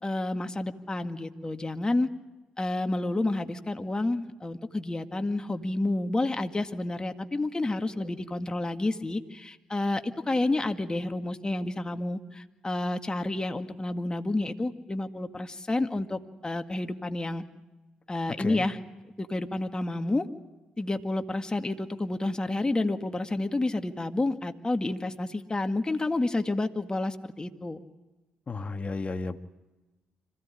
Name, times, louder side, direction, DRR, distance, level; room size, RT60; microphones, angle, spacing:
voice 1, 0.0-2.1 2.6-17.4 18.1-18.8 19.2-20.3 20.8-27.8, left 2 dB, 20° left, 6 dB, 2.0 m, -30 dB
voice 2, 28.5-29.4, left 3 dB, 35° left, 9 dB, 1.5 m, -33 dB
26.0 x 16.5 x 9.9 m, 1.1 s
hypercardioid pair, 50°, 4 cm